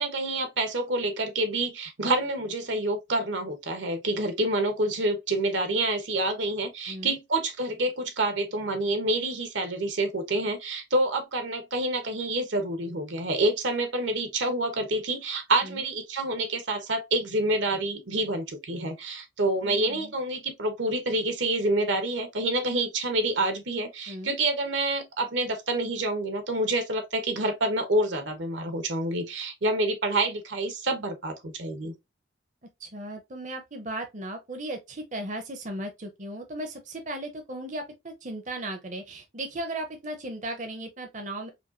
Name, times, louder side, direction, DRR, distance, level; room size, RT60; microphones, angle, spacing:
voice 1, 0.0-31.9, right 2 dB, 75° right, 1.0 m, -27 dB
voice 2, 6.9-7.2 15.6-15.8 19.6-20.1 24.1-24.3 32.8-41.5, right 1 dB, 40° right, 0.7 m, -36 dB
5.1 x 2.4 x 2.6 m
head